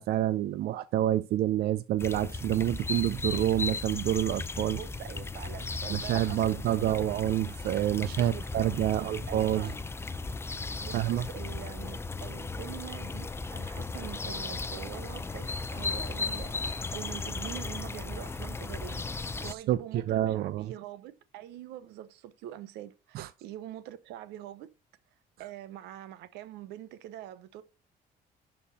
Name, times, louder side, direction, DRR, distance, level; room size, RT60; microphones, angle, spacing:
voice 1, 0.0-4.8 5.9-9.7 10.9-11.3 19.4-20.7 23.1-23.3, right 13 dB, 65° right, 0.4 m, -28 dB
sound 1, 2.0-19.5, left 3 dB, 15° left, 0.5 m, -36 dB
voice 2, 4.7-7.1 8.2-9.8 10.8-24.7 25.4-27.6, right 12 dB, 85° right, 0.8 m, -44 dB
11.0 x 4.4 x 4.1 m
cardioid pair, 110°, 17 cm